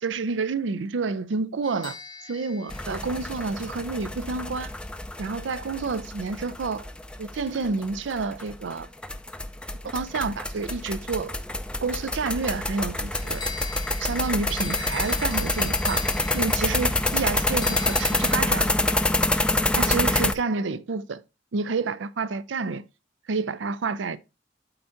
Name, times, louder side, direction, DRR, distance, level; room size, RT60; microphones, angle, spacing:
voice 1, 0.0-2.0 2.3-4.7 5.2-6.9 7.2-8.9 9.9-11.3 11.8-13.4 14.0-16.1 16.3-18.7 19.7-21.2 21.5-22.8 23.3-24.2, right 4 dB, 80° right, 0.5 m, -29 dB
sound 1, 1.6-3.9 13.1-18.3, left 5 dB, 25° left, 0.8 m, -40 dB
sound 2, 2.7-20.3, left 2 dB, 5° left, 0.4 m, -27 dB
11.5 x 4.4 x 2.6 m
head